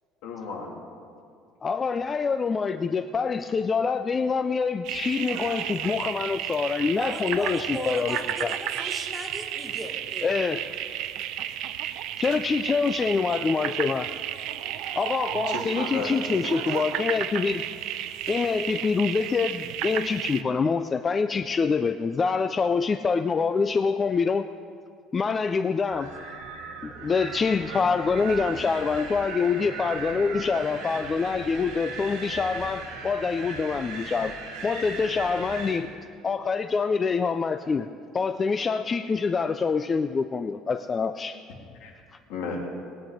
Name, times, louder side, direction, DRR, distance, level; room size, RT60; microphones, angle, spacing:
voice 1, 0.2-0.7 15.5-16.9 41.8-41.9 42.3-42.6, left 4 dB, 70° left, -1 dB, 2.8 m, -34 dB
voice 2, 1.6-8.6 10.2-10.6 12.2-14.1 15.0-17.6 18.3-24.5 25.1-26.1 26.8-34.3 34.6-35.9 36.2-37.9 38.1-41.4, left 5 dB, 20° left, 9 dB, 0.3 m, -25 dB
sound 1, 4.8-20.4, right 12 dB, 65° right, 0.5 m, -32 dB
voice 3, 7.0-10.3, left 1 dB, 5° left, 1 dB, 1.1 m, -36 dB
Wind, 25.9-35.8, right 4 dB, 80° right, 2.3 m, -38 dB
20.0 x 9.3 x 5.1 m, 2.3 s
cardioid pair, 165°, 0 cm